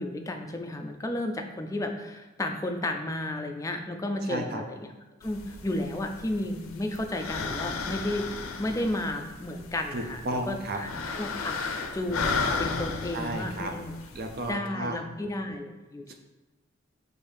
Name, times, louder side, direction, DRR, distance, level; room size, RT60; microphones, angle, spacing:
voice 1, 0.0-4.9 5.2-8.3 8.6-11.6 11.9-13.9 14.5-16.1, left 1 dB, 15° left, 4 dB, 0.3 m, -33 dB
voice 2, 4.2-4.6 9.9-10.8 13.1-13.7 14.1-15.0 16.1-16.2, right 1 dB, 50° right, 4 dB, 0.5 m, -33 dB
sound 1, 5.2-14.5, left 4 dB, 85° left, 0.5 m, -35 dB
5.5 x 2.6 x 3.3 m, 1.2 s
head